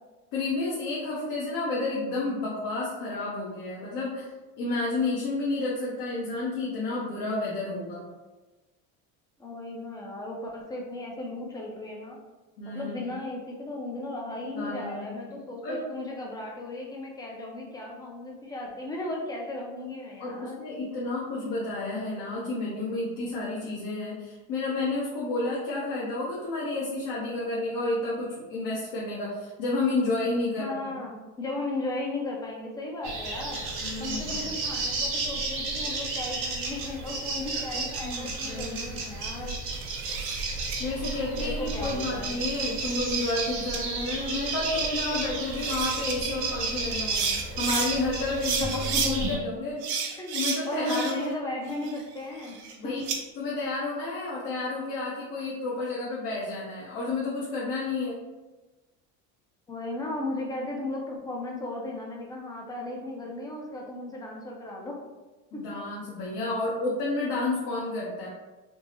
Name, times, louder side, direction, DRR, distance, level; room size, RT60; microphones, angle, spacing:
voice 1, 0.3-4.3 4.6-8.1 12.6-13.0 14.5-15.1 15.6-15.8 20.2-30.9 33.8-34.3 37.7-39.1 40.8-47.3 47.6-49.8 50.3-51.4 52.8-53.0 53.4-58.2 65.5-68.3, left 2 dB, 65° left, -6 dB, 1.0 m, -31 dB
voice 2, 9.4-12.2 12.6-20.6 30.6-33.6 34.0-39.6 41.3-42.4 48.7-49.4 50.2-50.4 50.7-52.6 52.8-52.9 59.7-65.0 65.5-65.6, left 2 dB, 10° left, -1 dB, 0.5 m, -35 dB
sound 1, 33.0-49.4, right 3 dB, 60° right, 1.0 m, -32 dB
sound 2, 39.7-40.8 42.3-43.4 43.7-43.8 45.2-45.3 45.5-46.1 46.9-47.9 48.4-49.1 49.8-51.3 51.7-53.2, right 6 dB, 80° right, 0.7 m, -32 dB
3.4 x 2.0 x 2.9 m, 1.2 s
cardioid pair, 135°, 35 cm